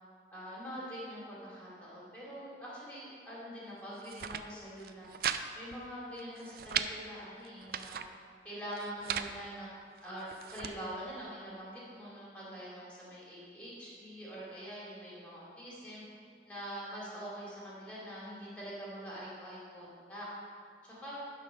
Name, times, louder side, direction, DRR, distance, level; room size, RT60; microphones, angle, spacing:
voice 1, 0.3-5.1 5.5-8.0 8.4-9.7 10.0-16.0 16.5-20.3 20.8-21.2, equal, 5° left, -7 dB, 2.2 m, -44 dB
sound 1, 3.9-4.4 4.8-5.4 5.7-5.8 6.2-6.9 7.4-8.1 8.7-9.3 10.0-10.7, right 9 dB, 55° right, 0.3 m, -37 dB
10.0 x 3.9 x 6.1 m, 2.3 s
head